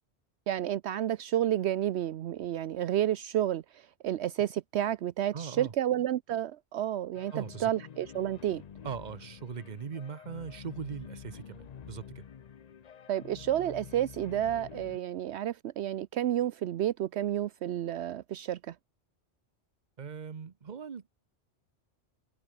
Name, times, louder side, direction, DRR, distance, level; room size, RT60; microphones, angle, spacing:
voice 1, 0.5-8.6 13.1-18.8, right 11 dB, 75° right, 0.9 m, -31 dB
voice 2, 5.3-5.7 7.3-7.7 8.8-12.2 20.0-21.1, right 6 dB, 40° right, 1.1 m, -40 dB
sound 1, 7.1-15.0, left 8 dB, 45° left, 0.6 m, -48 dB
omnidirectional pair, 1.2 m